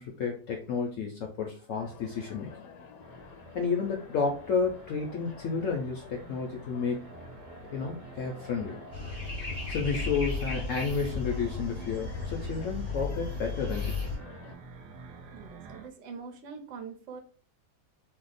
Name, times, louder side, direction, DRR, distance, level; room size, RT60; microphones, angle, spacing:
voice 1, 0.0-2.5 3.5-7.1 7.7-8.8 9.7-14.1, left 5 dB, 70° left, 1 dB, 0.8 m, -31 dB
sound 1, 1.7-14.6, left 6 dB, 85° left, 1.2 m, -51 dB
sound 2, 3.0-15.9, right 4 dB, 75° right, 1.1 m, -49 dB
sound 3, 8.9-14.2, left 4 dB, 20° right, 0.9 m, -34 dB
voice 2, 15.3-17.2, right 5 dB, 60° right, 4 dB, 0.9 m, -43 dB
2.8 x 2.0 x 3.9 m, 0.40 s
omnidirectional pair, 1.8 m